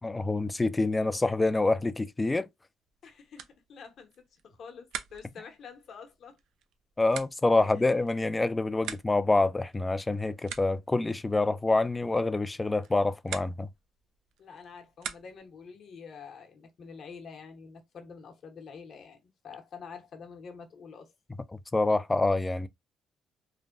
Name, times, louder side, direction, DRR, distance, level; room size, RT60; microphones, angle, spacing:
voice 1, 0.0-2.5 7.0-13.7 21.7-22.7, left 2 dB, 20° left, 0.3 m, -26 dB
sound 1, 2.8-15.6, right 9 dB, 85° right, 0.4 m, -46 dB
voice 2, 3.0-6.4 7.8-7.9 14.4-19.2 19.4-21.1, left 5 dB, 60° left, 0.9 m, -47 dB
3.2 x 2.2 x 2.5 m
cardioid pair, 90°, 0 cm